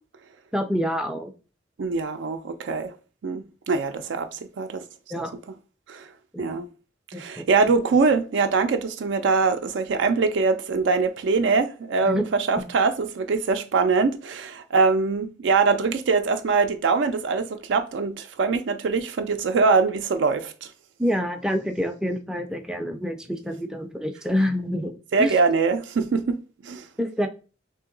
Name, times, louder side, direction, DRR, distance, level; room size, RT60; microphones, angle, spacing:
voice 1, 0.5-1.3 5.1-5.3 6.3-6.6 7.1-7.4 12.0-12.2 12.6-12.7 21.0-25.3 27.0-27.3, equal, 5° right, 0.3 m, -27 dB
voice 2, 1.8-2.9 3.2-4.8 5.2-5.3 5.9-6.1 6.4-6.7 7.2-20.7 25.1-26.9, right 4 dB, 75° right, 0.4 m, -23 dB
2.9 x 2.7 x 3.7 m
head